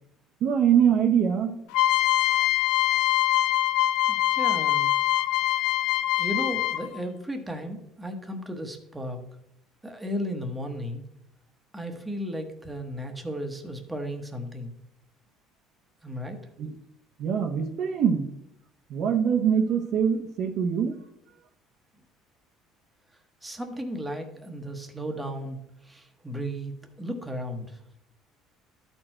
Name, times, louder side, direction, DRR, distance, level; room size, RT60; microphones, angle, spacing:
voice 1, 0.4-1.6 16.6-16.7 17.2-18.3 18.9-20.9, right 8 dB, 60° right, 4 dB, 0.9 m, -23 dB
sound 1, 1.7-7.0, left 14 dB, 85° left, 0.5 m, -23 dB
voice 2, 4.1-4.9 6.2-9.2 9.8-11.0 11.7-14.7 16.0-16.4 23.4-25.6 25.8-26.7 27.0-27.8, equal, 10° right, 4 dB, 1.0 m, -34 dB
12.5 x 4.5 x 4.4 m, 0.81 s
cardioid pair, 130°, 0 cm